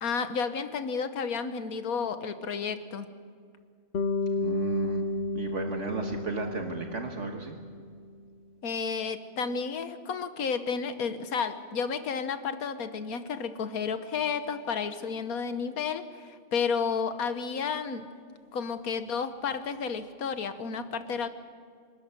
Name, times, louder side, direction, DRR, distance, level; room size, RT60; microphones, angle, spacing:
voice 1, 0.0-3.1 8.6-18.1 18.5-21.3, left 6 dB, 90° left, 10 dB, 1.6 m, -31 dB
Bass guitar, 3.9-8.2, left 2 dB, 55° left, 1.0 m, -32 dB
voice 2, 4.4-5.0 5.3-7.6, right 4 dB, 60° right, 3 dB, 1.6 m, -35 dB
26.0 x 13.0 x 9.5 m, 2.1 s
omnidirectional pair, 1.5 m